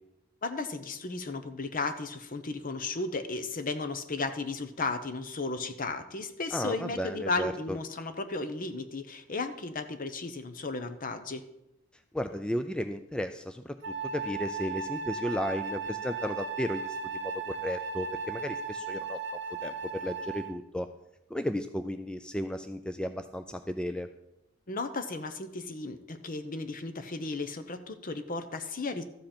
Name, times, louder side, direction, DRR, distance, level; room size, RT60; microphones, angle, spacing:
voice 1, 0.4-11.4 24.7-29.0, left 3 dB, 45° left, 10 dB, 0.8 m, -34 dB
voice 2, 6.5-7.8 12.1-19.2 19.6-20.9 21.3-24.1, equal, 5° left, 8 dB, 0.3 m, -34 dB
Wind instrument woodwind instrument, 13.8-20.6, right 4 dB, 60° right, 0.9 m, -36 dB
13.0 x 7.6 x 4.4 m, 0.89 s
head